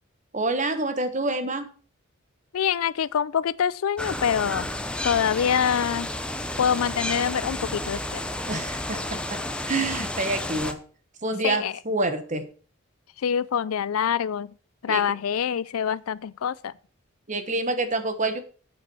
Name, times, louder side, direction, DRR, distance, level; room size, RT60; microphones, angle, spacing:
voice 1, 0.3-1.7 8.5-9.4 9.7-10.8 11.2-12.5 14.9-15.0 17.3-18.4, right 2 dB, 35° right, 1.2 m, -27 dB
voice 2, 2.5-4.7 5.0-6.1 6.6-8.2 11.4-11.7 13.2-14.5 14.8-16.7, left 8 dB, 85° left, 0.4 m, -25 dB
sound 1, 4.0-10.7, left 1 dB, 5° left, 0.7 m, -31 dB
8.4 x 7.4 x 5.5 m
head